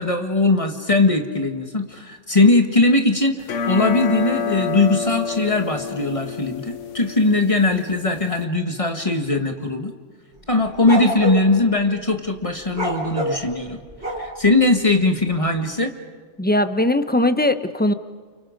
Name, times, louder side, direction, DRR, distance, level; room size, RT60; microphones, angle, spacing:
voice 1, 0.0-9.9 10.5-13.8 14.2-15.9, left 2 dB, 25° left, 5 dB, 1.6 m, -20 dB
sound 1, 3.4-8.4, left 5 dB, 75° left, 1.3 m, -28 dB
sound 2, 10.4-11.5 12.7-14.5, right 1 dB, 60° right, 3.9 m, -26 dB
voice 2, 16.4-17.9, left 1 dB, 10° left, 10 dB, 0.7 m, -19 dB
29.5 x 29.0 x 5.2 m, 1.5 s
omnidirectional pair, 1.3 m